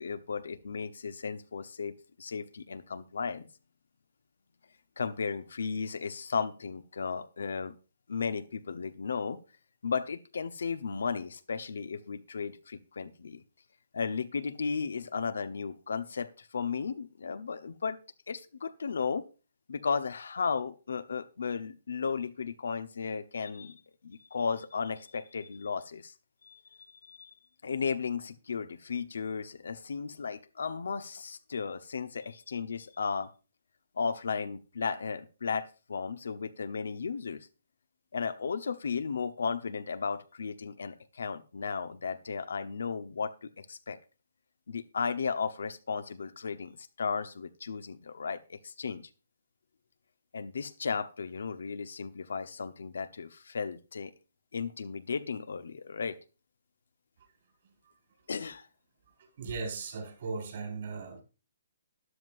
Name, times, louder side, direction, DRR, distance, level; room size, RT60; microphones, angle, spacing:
voice 1, 0.0-3.5 5.0-7.7 8.1-9.4 9.8-13.4 13.9-18.0 18.3-19.2 19.7-26.1 26.4-26.6 26.9-27.3 27.6-33.3 34.0-37.5 38.1-44.0 44.7-49.1 50.3-54.1 54.5-56.2 58.3-58.7, left 5 dB, 75° left, 0.9 m, -35 dB
voice 2, 59.4-61.2, right 4 dB, 55° right, 5.5 m, -37 dB
13.0 x 11.0 x 2.6 m
hypercardioid pair, 140°, 0 cm